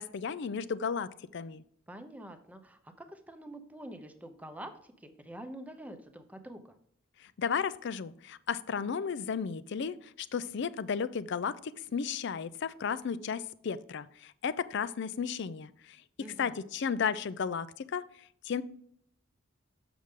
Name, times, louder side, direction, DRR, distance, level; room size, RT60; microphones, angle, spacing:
voice 1, 0.0-1.6 7.4-16.0 16.4-18.0 18.4-18.6, left 6 dB, 60° left, 16 dB, 0.4 m, -34 dB
voice 2, 1.9-6.7 16.2-16.7, right 1 dB, 5° right, 7 dB, 0.7 m, -46 dB
6.9 x 6.4 x 3.7 m, 0.66 s
head